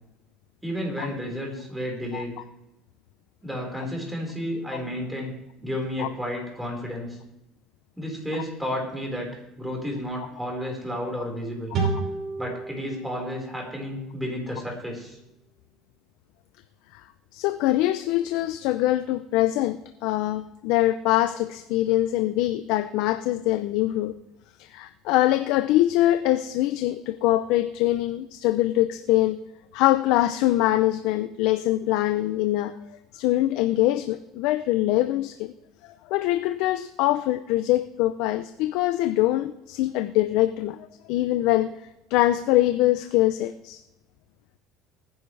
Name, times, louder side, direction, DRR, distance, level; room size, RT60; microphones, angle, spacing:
voice 1, 0.6-2.3 3.4-5.3 5.6-7.2 8.0-11.7 12.4-15.2, equal, 5° right, 0 dB, 4.7 m, -32 dB
sound 1, 11.7-15.1, right 4 dB, 45° right, 5.4 m, -32 dB
voice 2, 17.3-24.2 24.6-29.4 29.7-32.8 33.1-35.5 35.8-41.7 42.1-43.8, left 15 dB, 75° left, 11 dB, 0.5 m, -23 dB
20.0 x 10.0 x 3.3 m, 0.89 s
cardioid pair, 120°, 0 cm